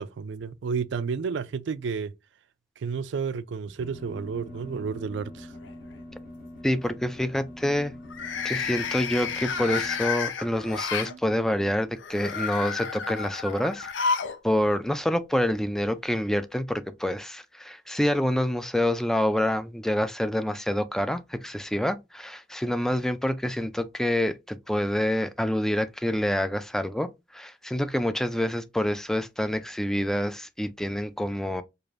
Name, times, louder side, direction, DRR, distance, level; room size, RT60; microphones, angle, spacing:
voice 1, 0.0-2.1 2.8-5.5 11.1-11.2 11.7-11.8, right 5 dB, 70° right, 0.4 m, -31 dB
sound 1, 3.8-10.0, left 1 dB, 50° left, 1.5 m, -44 dB
sound 2, 4.5-5.2 5.5-5.9 8.0-11.1 12.0-14.4 14.7-14.8 15.9-16.0, left 5 dB, 80° left, 0.6 m, -31 dB
voice 2, 6.6-7.9 8.4-14.2 14.4-31.6, left 1 dB, 5° left, 0.3 m, -27 dB
4.8 x 2.5 x 2.5 m
head